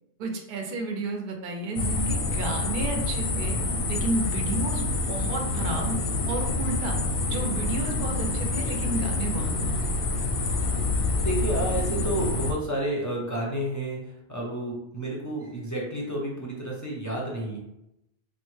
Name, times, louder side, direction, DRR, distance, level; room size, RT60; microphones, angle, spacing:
voice 1, 0.2-3.6 3.9-6.0 6.3-9.8, right 3 dB, 60° right, 2 dB, 0.6 m, -32 dB
sound 1, 1.8-12.5, left 2 dB, 60° left, 0.6 m, -27 dB
voice 2, 11.2-17.6, right 1 dB, 20° left, -3 dB, 0.5 m, -30 dB
3.5 x 2.1 x 3.1 m, 0.87 s
omnidirectional pair, 1.2 m